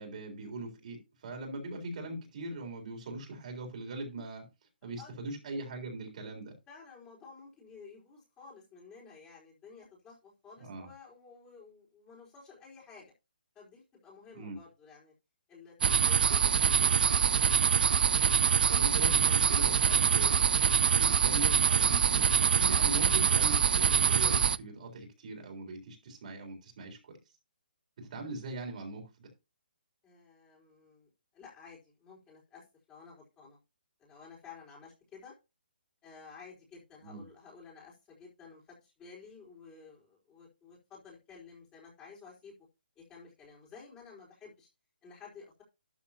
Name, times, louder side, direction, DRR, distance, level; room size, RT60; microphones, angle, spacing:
voice 1, 0.0-4.5 4.8-6.6 10.6-10.9 14.3-14.6 18.7-20.5 20.9-27.1 28.0-29.3 37.0-37.2, right 2 dB, 50° right, 3.7 m, -41 dB
voice 2, 6.7-13.1 13.5-15.1 15.5-17.6 30.0-33.6 34.0-35.3 36.0-42.6 43.0-44.7 45.0-45.6, left 5 dB, 15° left, 4.3 m, -53 dB
sound 1, 15.8-24.6, right 7 dB, 65° right, 0.4 m, -25 dB
12.5 x 7.1 x 2.9 m
hypercardioid pair, 160°, 5 cm